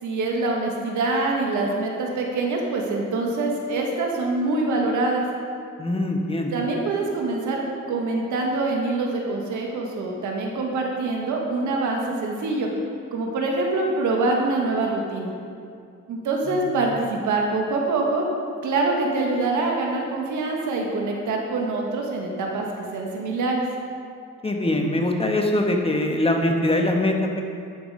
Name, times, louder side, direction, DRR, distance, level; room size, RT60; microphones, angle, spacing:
voice 1, 0.0-5.2 6.5-12.7 13.1-15.3 16.1-18.2 18.6-23.6, right 3 dB, 75° right, 0 dB, 1.7 m, -25 dB
voice 2, 5.8-6.5 16.5-16.9 24.4-27.4, left 1 dB, 20° left, 2 dB, 1.3 m, -23 dB
12.0 x 6.2 x 4.9 m, 2.4 s
cardioid pair, 90°, 30 cm